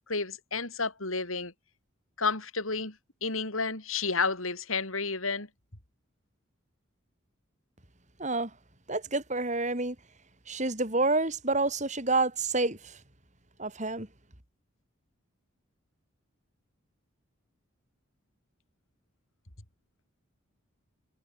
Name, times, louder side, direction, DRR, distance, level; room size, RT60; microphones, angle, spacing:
voice 1, 0.1-1.5 2.2-5.5, left 4 dB, 80° left, 5.3 m, -31 dB
voice 2, 8.2-8.5 8.9-10.0 10.5-13.0 13.6-14.1, right 3 dB, 35° right, 4.0 m, -28 dB
head